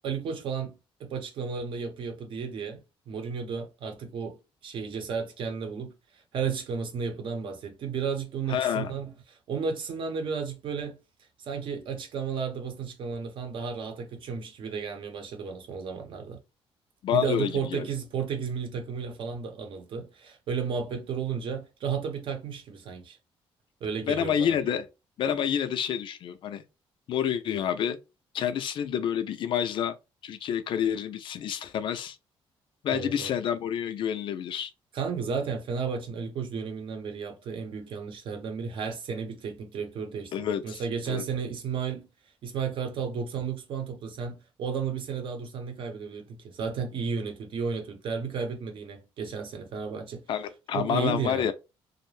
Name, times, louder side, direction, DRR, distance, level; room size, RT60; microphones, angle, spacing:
voice 1, 0.0-4.4 4.6-5.9 6.3-9.1 9.5-11.0 11.4-16.4 17.1-23.2 23.8-24.6 32.9-33.3 34.9-42.1 42.4-50.2 50.7-51.5, right 6 dB, 55° right, 0.8 m, -33 dB
voice 2, 8.5-8.9 17.0-17.8 24.1-24.9 25.2-26.6 27.1-28.0 28.3-30.0 30.2-32.2 32.8-34.7 40.3-41.2 50.3-51.5, left 9 dB, 55° left, 0.4 m, -28 dB
2.5 x 2.0 x 3.2 m
cardioid pair, 145°, 10 cm